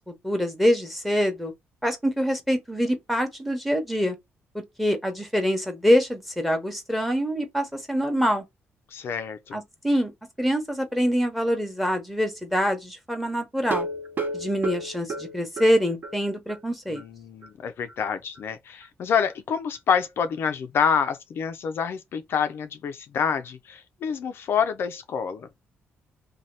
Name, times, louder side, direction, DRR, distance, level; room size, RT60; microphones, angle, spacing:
voice 1, 0.0-1.5 1.8-4.2 4.5-8.4 9.5-10.1 10.4-13.9 14.3-17.0, equal, ahead, 0.8 m, -25 dB
voice 2, 8.9-9.6 16.9-25.5, left 7 dB, 60° left, 0.4 m, -27 dB
sound 1, 13.6-16.2 16.5-16.6 17.0-17.1 17.4-17.5, right 2 dB, 50° right, 0.8 m, -32 dB
2.7 x 2.2 x 3.1 m
cardioid pair, 120°, 5 cm